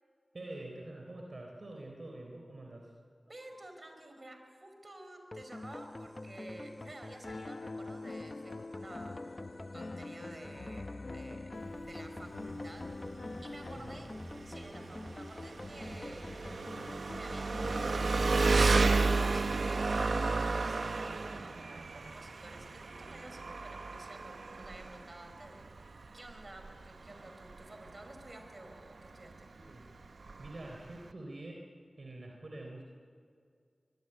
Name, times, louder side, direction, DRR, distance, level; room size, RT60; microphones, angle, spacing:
voice 1, 0.3-2.9 13.8-13.9 29.5-29.9 30.4-31.7 32.0-32.8, right 2 dB, 65° right, 1 dB, 3.7 m, -46 dB
voice 2, 3.3-9.2 9.7-11.5 11.9-12.9 13.4-14.1 14.4-16.7 17.1-18.5 19.2-29.5, right 1 dB, 45° right, 5 dB, 5.3 m, -51 dB
sound 1, 5.3-20.4, left 2 dB, 35° left, 1.0 m, -46 dB
Piano, 7.2-14.1, left 3 dB, 80° left, 0.9 m, -46 dB
Engine, 11.5-31.1, right 3 dB, 85° right, 1.1 m, -33 dB
25.0 x 21.5 x 9.9 m, 2.3 s
wide cardioid pair, 50°, 0 cm